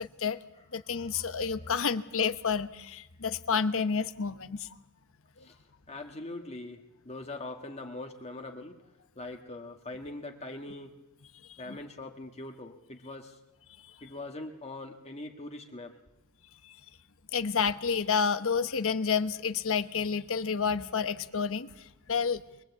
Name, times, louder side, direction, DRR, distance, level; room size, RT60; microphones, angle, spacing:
voice 1, 0.0-0.4 0.7-4.7 11.5-11.8 16.6-16.8 17.3-22.4, left 6 dB, 65° left, 12 dB, 1.0 m, -30 dB
voice 2, 0.5-1.7 5.4-8.8 9.2-10.9 11.6-13.4 14.0-16.0, left 2 dB, 30° left, 4 dB, 1.5 m, -43 dB
23.5 x 20.5 x 8.2 m, 0.98 s
head